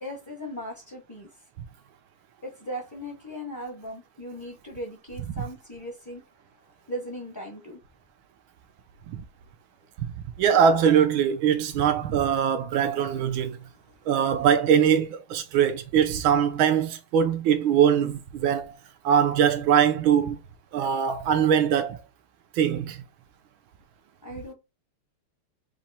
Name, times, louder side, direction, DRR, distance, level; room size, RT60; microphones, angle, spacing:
voice 1, 0.0-1.3 2.4-6.2 6.9-7.8 13.5-13.6 13.9-14.0 24.2-24.5, equal, 15° left, 0.7 m, -38 dB
voice 2, 10.4-13.6 14.1-18.8 19.0-20.4 20.7-22.0 22.6-23.0, right 8 dB, 75° right, 1.4 m, -22 dB
4.2 x 2.7 x 4.2 m
omnidirectional pair, 2.4 m